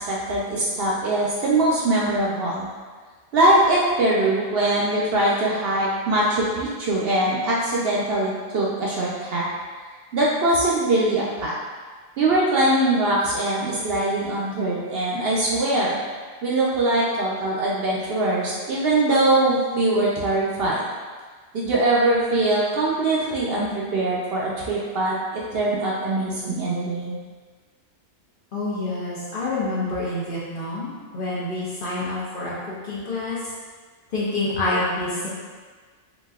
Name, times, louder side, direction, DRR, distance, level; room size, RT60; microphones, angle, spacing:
voice 1, 0.0-2.7 3.3-9.5 10.1-11.6 12.2-16.0 16.4-20.8 21.5-27.2, right 2 dB, 60° right, -5 dB, 0.7 m, -22 dB
voice 2, 28.5-33.4 34.1-35.3, left 2 dB, 55° left, -7 dB, 0.7 m, -27 dB
4.0 x 2.6 x 2.3 m, 1.5 s
omnidirectional pair, 1.3 m